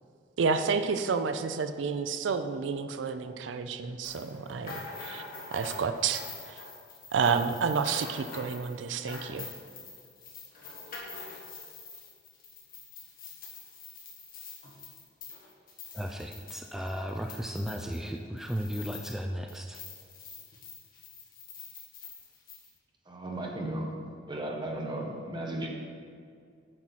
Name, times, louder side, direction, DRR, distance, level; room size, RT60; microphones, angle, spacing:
voice 1, 0.4-5.2 5.5-6.6 7.1-9.5, right 5 dB, 90° right, 9 dB, 0.4 m, -30 dB
sound 1, 4.0-19.2 19.5-22.7, left 3 dB, 50° left, 1.7 m, -45 dB
voice 2, 15.9-19.8, equal, ahead, 2 dB, 0.3 m, -35 dB
voice 3, 23.1-23.9 24.3-25.7, right 1 dB, 25° right, 0 dB, 1.1 m, -35 dB
8.8 x 6.1 x 4.1 m, 2.3 s
head